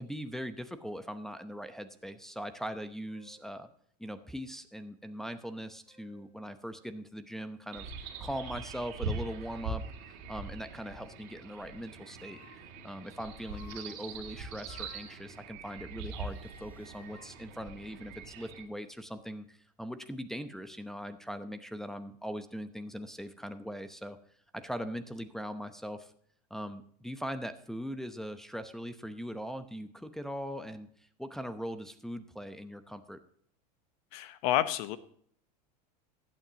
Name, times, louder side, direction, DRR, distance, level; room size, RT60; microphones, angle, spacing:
voice 1, 0.0-3.7 4.0-7.9 8.2-9.8 10.3-12.4 12.8-24.2 24.5-26.1 26.5-33.2, equal, ahead, 7 dB, 0.8 m, -40 dB
sound 1, 3.1-3.5 4.2-4.3 5.6-6.3 6.7-6.9 7.3-7.5 8.1-8.4 9.1-9.8 10.8-11.2 12.2-12.8 13.4-15.9 16.1-18.5, left 3 dB, 85° left, 2.6 m, -59 dB
sound 2, 7.7-18.6, right 4 dB, 60° right, 2.4 m, -42 dB
voice 2, 34.1-35.0, left 12 dB, 65° left, 13 dB, 1.0 m, -29 dB
15.5 x 9.0 x 2.9 m, 0.63 s
hypercardioid pair, 100°, 21 cm